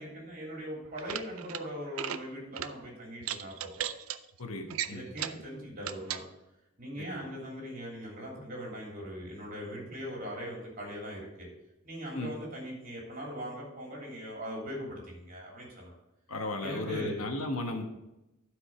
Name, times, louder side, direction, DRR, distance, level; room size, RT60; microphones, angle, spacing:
voice 1, 0.0-3.7 4.8-6.2 6.8-11.5 11.8-15.9 16.6-17.2, equal, 40° right, -2 dB, 3.3 m, -40 dB
sound 1, 0.8-1.6 1.9-2.2 2.5-2.7 3.2-4.2 4.7-5.4 5.8-6.2, right 10 dB, 75° right, 0.5 m, -36 dB
voice 2, 4.4-5.0 12.1-12.3 16.3-17.9, left 2 dB, 85° left, 4 dB, 1.2 m, -35 dB
11.5 x 5.0 x 4.8 m, 0.94 s
head